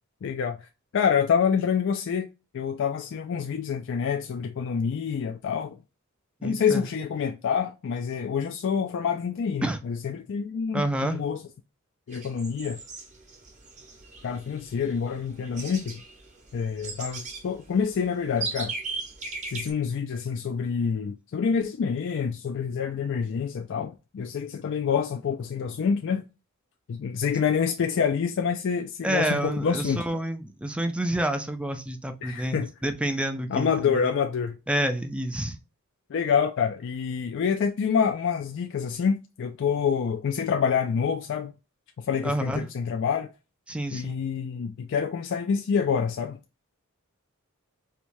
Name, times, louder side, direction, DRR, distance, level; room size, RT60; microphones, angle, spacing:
voice 1, 0.2-0.7 0.9-5.8 6.4-11.4 12.1-12.8 14.2-16.0 16.5-18.7 19.5-26.3 26.9-30.0 32.2-32.7 33.5-34.6 36.1-41.5 42.0-43.3 43.9-46.4, left 6 dB, 60° left, 0.4 m, -27 dB
voice 2, 6.4-6.8 9.6-9.8 10.7-11.2 29.0-34.1 34.7-35.6 42.2-42.6 43.7-44.2, right 1 dB, 5° right, 0.4 m, -28 dB
sound 1, 12.1-19.7, right 4 dB, 35° right, 0.9 m, -38 dB
4.5 x 2.2 x 2.6 m
head